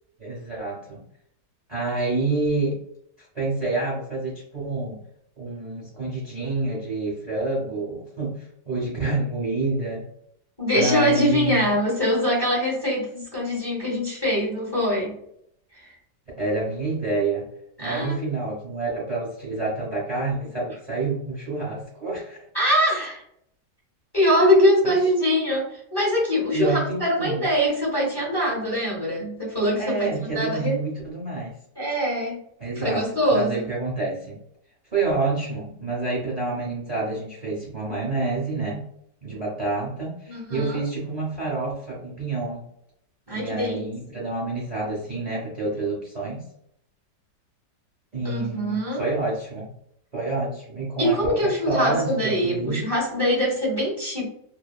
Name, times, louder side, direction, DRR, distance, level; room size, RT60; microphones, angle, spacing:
voice 1, 0.2-1.0 1.7-2.8 3.2-5.0 5.4-10.1 10.7-11.7 16.4-17.5 17.8-22.4 26.5-27.5 29.8-31.5 32.6-34.4 34.9-38.9 39.2-42.6 43.3-46.4 48.1-49.7 50.1-52.9, right 3 dB, 50° right, -6 dB, 0.5 m, -28 dB
voice 2, 10.6-15.1 15.8-15.9 17.8-18.2 22.5-23.2 24.1-30.1 30.3-30.8 31.8-32.4 32.7-33.7 40.3-40.8 43.3-43.9 48.2-49.0 51.0-54.3, equal, 20° left, -5 dB, 0.8 m, -23 dB
2.8 x 2.2 x 2.3 m, 0.71 s
omnidirectional pair, 1.8 m